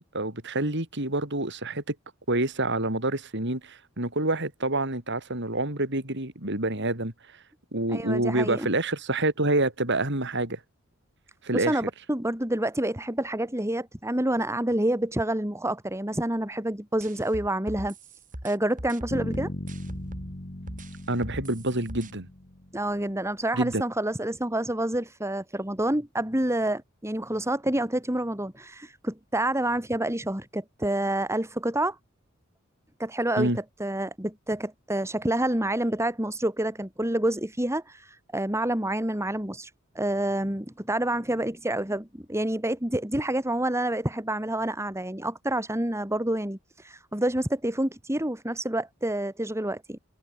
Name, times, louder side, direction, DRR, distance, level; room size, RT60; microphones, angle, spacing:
voice 1, 0.1-2.0 2.3-7.1 7.7-10.6 11.4-11.8 21.1-22.3 23.5-23.8 33.4-33.6, right 2 dB, 60° right, 7.1 m, -27 dB
voice 2, 7.9-8.7 11.5-17.9 18.4-19.5 22.7-32.0 33.0-39.7 40.0-50.0, right 1 dB, 15° right, 3.8 m, -28 dB
sound 1, 17.0-20.3 20.7-22.1, right 1 dB, 40° right, 5.0 m, -40 dB
Bass guitar, 19.1-23.0, left 1 dB, 40° left, 2.4 m, -37 dB
head